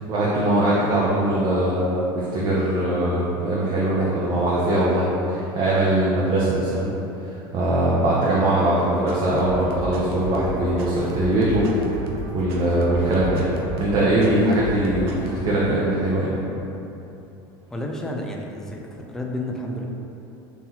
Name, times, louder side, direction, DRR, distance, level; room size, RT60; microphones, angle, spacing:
voice 1, 0.1-6.9 7.5-11.7 12.3-13.5 13.8-16.3, right 1 dB, 40° right, -7 dB, 0.6 m, -21 dB
sound 1, 8.9-15.4, right 2 dB, 85° right, 0.5 m, -34 dB
voice 2, 17.7-19.9, left 1 dB, 5° left, -1 dB, 0.3 m, -31 dB
3.8 x 2.7 x 2.7 m, 2.9 s
supercardioid pair, 100°, 13 cm